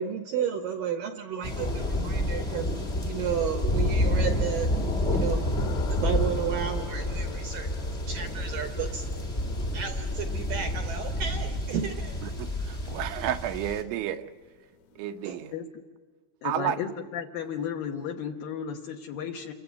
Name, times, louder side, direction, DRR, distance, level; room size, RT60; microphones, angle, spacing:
voice 1, 0.0-2.6 3.0-4.7 5.1-5.5 5.9-7.7 8.1-9.0 9.7-12.2 13.2-13.3 15.2-15.4, right 8 dB, 70° right, 6 dB, 2.2 m, -32 dB
sound 1, 1.4-13.8, left 1 dB, 30° left, 1.2 m, -29 dB
sound 2, 1.6-15.6, left 9 dB, 85° left, 3.8 m, -48 dB
voice 2, 12.2-14.3 15.0-15.6 16.4-16.8, right 11 dB, 85° right, 7 dB, 3.3 m, -31 dB
voice 3, 16.4-19.5, left 8 dB, 65° left, 3 dB, 2.5 m, -34 dB
29.0 x 22.5 x 8.2 m, 1.4 s
omnidirectional pair, 5.2 m